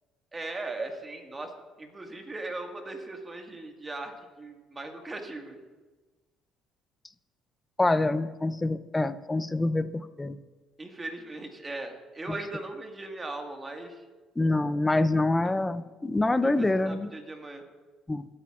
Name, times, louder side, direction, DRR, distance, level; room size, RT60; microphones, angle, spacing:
voice 1, 0.3-1.5 1.8-5.6 10.8-14.0 15.4-15.5 16.4-17.6, right 2 dB, 25° right, 3 dB, 1.8 m, -39 dB
voice 2, 7.8-10.4 14.4-17.1 18.1-18.2, left 2 dB, 15° left, 14 dB, 0.5 m, -26 dB
20.5 x 8.7 x 2.5 m, 1.3 s
supercardioid pair, 70°, 0 cm